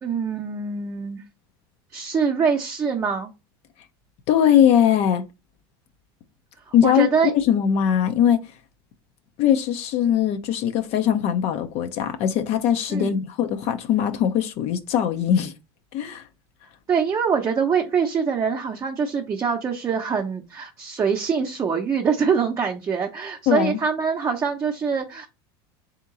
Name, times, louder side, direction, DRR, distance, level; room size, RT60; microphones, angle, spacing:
voice 1, 0.0-1.2 1.9-3.3 6.7-7.3 12.9-13.2 16.9-25.3, right 6 dB, 25° right, 0.7 m, -24 dB
voice 2, 4.3-5.2 6.7-7.1 7.3-8.4 9.4-15.5 15.9-16.2 23.5-23.8, left 9 dB, 55° left, 0.7 m, -20 dB
3.7 x 2.9 x 3.7 m
supercardioid pair, 115°, 13 cm